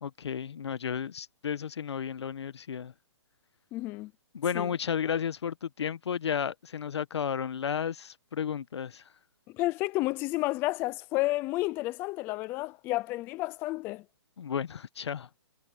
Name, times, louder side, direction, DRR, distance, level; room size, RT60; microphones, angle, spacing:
voice 1, 0.0-2.9 4.3-9.0 14.4-15.3, left 7 dB, 75° left, 1.2 m, -33 dB
voice 2, 3.7-4.1 4.5-4.7 9.6-14.0, left 19 dB, 15° left, 0.5 m, -31 dB
hypercardioid pair, 160°, 14 cm